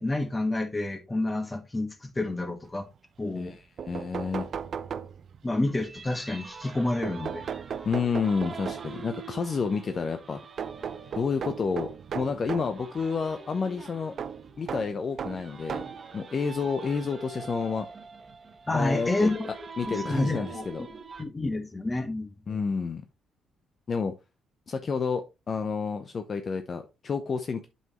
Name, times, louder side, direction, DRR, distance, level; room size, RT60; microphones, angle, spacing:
voice 1, 0.0-2.9 3.2-3.5 5.4-7.5 18.7-19.5 19.9-20.6 21.2-22.3, left 2 dB, 20° left, 1.5 m, -29 dB
sound 1, 3.5-3.6 3.8-5.5 7.0-9.1 10.6-12.8 14.2-16.1 16.9-17.0 18.3-18.4 18.8-18.9, right 7 dB, 55° right, 0.6 m, -36 dB
voice 2, 3.9-4.5 7.8-10.4 11.1-11.9 12.1-14.1 14.6-15.9 16.1-17.9 18.7-19.3 19.8-20.8 22.5-23.0 23.9-24.1 24.7-27.7, left 5 dB, 45° left, 0.7 m, -30 dB
sound 2, 5.8-21.2, right 5 dB, 40° right, 1.1 m, -44 dB
7.8 x 5.6 x 3.1 m
cardioid pair, 90°, 0 cm